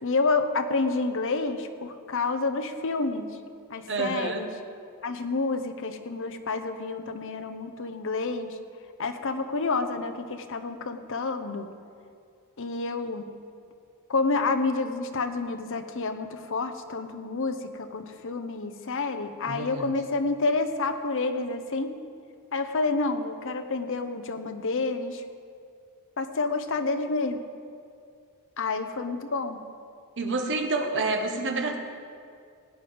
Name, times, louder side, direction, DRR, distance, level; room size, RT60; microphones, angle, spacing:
voice 1, 0.0-3.3 3.7-4.5 5.0-8.6 9.0-11.7 12.6-13.3 14.1-22.0 22.5-25.2 26.2-27.4 28.6-29.6, left 3 dB, 60° left, 8 dB, 0.9 m, -29 dB
voice 2, 3.9-4.5 19.5-19.9 30.2-31.8, right 3 dB, 55° right, 3 dB, 1.3 m, -28 dB
17.0 x 9.5 x 5.2 m, 2.3 s
head